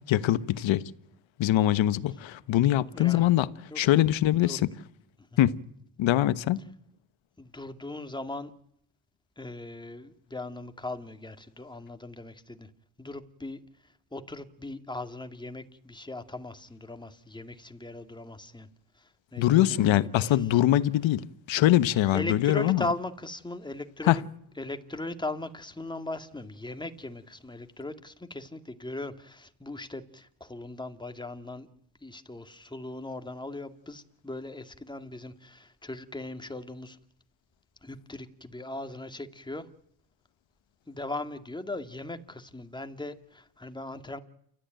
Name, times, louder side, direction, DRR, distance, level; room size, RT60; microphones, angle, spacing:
voice 1, 0.1-0.9 1.4-3.5 3.7-4.7 5.4-5.6 6.0-6.6 19.4-22.8 24.1-24.2, left 13 dB, 65° left, 1.3 m, -23 dB
voice 2, 2.9-3.3 3.7-4.0 4.3-4.6 5.2-5.3 7.4-8.5 9.4-12.7 13.0-18.7 18.9-20.4 22.1-24.2 24.6-31.7 32.0-37.0 37.8-39.7 40.9-44.2, left 2 dB, 10° left, 2.3 m, -39 dB
29.0 x 14.0 x 9.1 m
cardioid pair, 90°, 50 cm